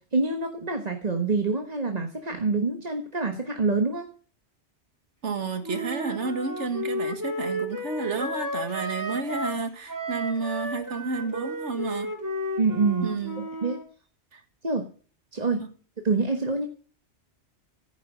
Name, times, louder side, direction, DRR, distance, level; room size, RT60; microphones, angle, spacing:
voice 1, 0.1-4.1 12.6-13.1 13.6-13.8 14.6-14.8 15.3-15.6 16.0-16.7, right 3 dB, 35° right, 1.4 m, -26 dB
voice 2, 5.2-12.1 13.0-13.5 14.3-14.4 15.6-15.7, right 4 dB, 75° right, 2.0 m, -31 dB
Wind instrument woodwind instrument, 5.6-9.6 9.9-13.8, equal, 15° right, 2.5 m, -33 dB
14.5 x 9.9 x 6.5 m
omnidirectional pair, 1.2 m